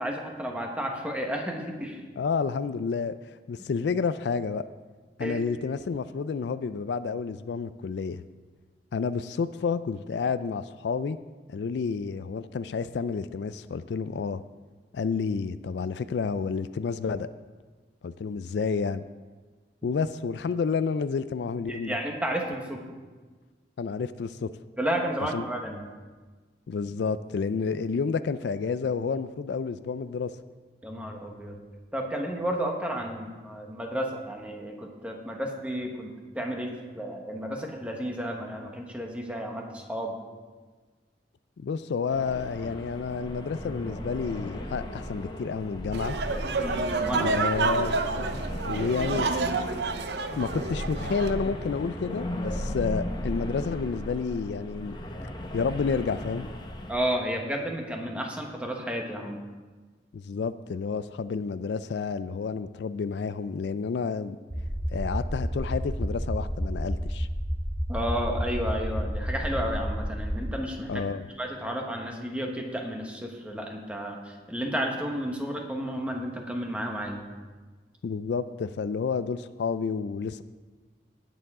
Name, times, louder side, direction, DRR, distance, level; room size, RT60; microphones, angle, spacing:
voice 1, 0.0-2.0 5.2-5.4 21.7-22.8 24.8-25.8 30.8-31.6 31.9-40.1 46.6-47.3 56.9-59.4 67.9-71.0 71.4-77.3, equal, 5° right, 1 dB, 1.3 m, -32 dB
voice 2, 2.2-4.7 5.2-8.2 8.9-11.2 11.5-14.4 14.9-17.3 18.0-19.0 19.8-22.0 23.8-24.5 25.3-25.5 26.7-30.3 41.6-46.2 47.1-48.0 48.6-49.3 50.4-55.0 55.5-56.5 60.1-64.4 64.9-67.3 70.9-71.2 78.0-80.4, left 5 dB, 70° left, 14 dB, 0.3 m, -30 dB
sound 1, 42.1-57.0, left 1 dB, 25° left, 0.9 m, -36 dB
sound 2, 45.9-51.3, right 4 dB, 70° right, 0.7 m, -29 dB
sound 3, 64.5-70.3, equal, 30° right, 2.3 m, -30 dB
18.5 x 6.9 x 3.7 m, 1.4 s
head